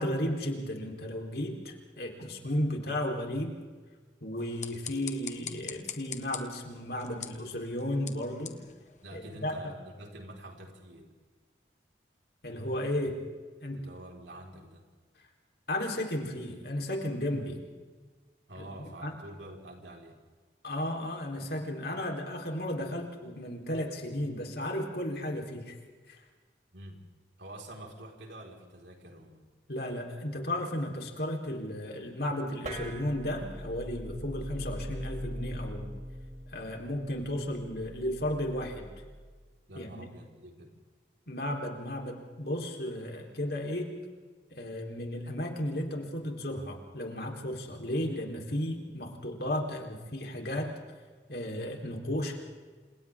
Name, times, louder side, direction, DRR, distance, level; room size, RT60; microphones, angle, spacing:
voice 1, 0.0-3.5 4.2-8.6 9.1-9.5 12.4-13.2 13.6-13.8 15.7-17.6 18.6-18.7 19.0-19.1 20.6-25.8 26.1-26.2 29.7-35.9 36.5-38.9 39.8-40.1 41.3-43.9 44.5-50.7 51.3-52.4, left 1 dB, 60° left, 1 dB, 4.0 m, -34 dB
sound 1, 4.3-9.6, left 9 dB, 40° left, 1.6 m, -44 dB
voice 2, 9.0-11.1 13.7-14.8 18.5-20.2 26.7-27.0 27.4-29.5 39.7-40.7, right 1 dB, 85° right, 0 dB, 4.8 m, -47 dB
sound 2, 32.6-39.4, equal, 40° right, 2.5 m, -41 dB
29.5 x 28.0 x 3.7 m, 1.4 s
head